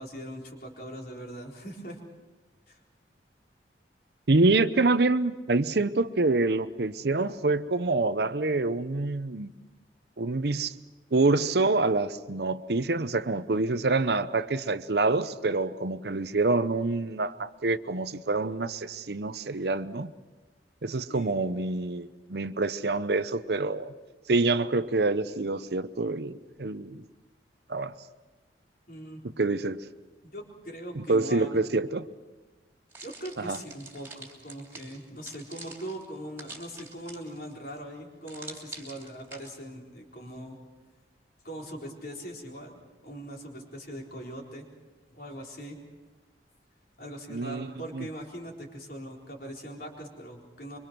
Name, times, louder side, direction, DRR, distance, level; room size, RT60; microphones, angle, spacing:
voice 1, 0.0-2.0 2.7-2.8 21.1-21.4 28.9-29.2 30.2-31.6 33.0-40.6 41.4-44.7 45.1-45.8 47.0-50.8, equal, 55° left, 0 dB, 4.2 m, -41 dB
voice 2, 4.3-9.5 10.2-10.7 11.1-20.1 20.8-23.9 24.3-26.3 26.6-27.0 27.7-27.9 29.4-29.8 31.0-32.1 33.4-33.6 47.3-47.7 47.9-48.0, right 3 dB, 60° right, 13 dB, 0.8 m, -26 dB
sound 1, 32.9-37.5 38.3-39.5, right 3 dB, 10° right, 3.1 m, -46 dB
25.5 x 24.0 x 6.1 m, 1.2 s
head